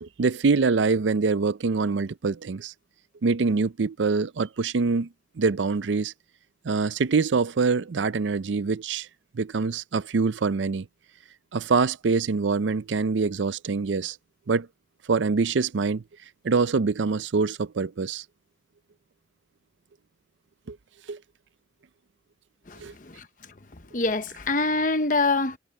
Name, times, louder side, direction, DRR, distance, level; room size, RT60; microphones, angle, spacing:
voice 1, 0.0-2.7 3.2-5.1 5.4-6.1 6.6-9.1 9.3-10.9 11.5-14.2 14.5-14.7 15.1-16.0 16.4-18.2 20.7-20.8 21.1-21.2 22.8-22.9, right 4 dB, 80° right, 0.5 m, -24 dB
voice 2, 22.7-23.2 23.9-25.6, left 3 dB, 45° left, 1.0 m, -25 dB
head